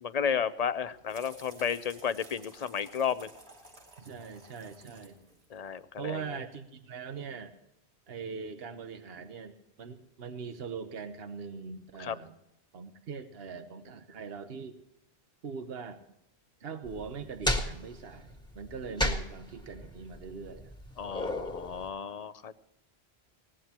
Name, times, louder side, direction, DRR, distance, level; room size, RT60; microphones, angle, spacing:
voice 1, 0.0-3.3 5.5-6.2 12.0-12.2 21.0-22.6, left 7 dB, 45° left, 15 dB, 0.7 m, -33 dB
sound 1, 0.6-6.2, right 2 dB, 85° right, 2.9 m, -55 dB
voice 2, 4.0-5.2 6.0-7.5 8.1-12.3 12.7-14.8 15.4-16.0 16.6-20.8, right 5 dB, 70° right, 8 dB, 1.2 m, -41 dB
sound 2, 16.8-21.9, left 1 dB, 5° left, 1.7 m, -34 dB
20.0 x 17.5 x 2.9 m, 0.83 s
omnidirectional pair, 1.1 m